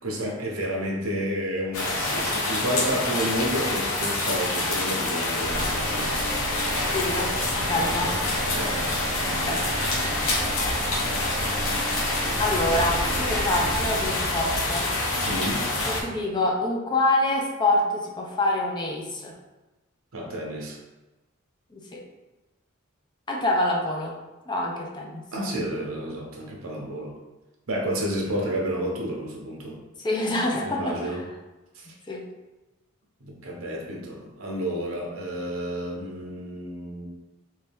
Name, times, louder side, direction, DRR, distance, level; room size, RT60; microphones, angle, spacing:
voice 1, 0.0-6.1 7.7-8.1 8.5-8.8 9.5-9.9 15.3-15.7 20.1-20.8 25.3-27.2 27.7-29.8 30.6-31.3 31.7-31.9 33.2-37.1, equal, 85° right, -1 dB, 0.9 m, -31 dB
sound 1, 1.7-16.0, left 2 dB, 75° left, 0.8 m, -27 dB
sound 2, 5.5-14.1, right 2 dB, 45° right, 0.4 m, -33 dB
voice 2, 6.8-8.1 9.3-10.1 12.4-14.9 15.9-19.3 21.7-22.0 23.3-24.2 24.5-25.2 30.0-31.0 32.1-32.2, left 2 dB, 20° left, 0 dB, 0.5 m, -26 dB
3.3 x 2.7 x 3.4 m, 1.1 s
head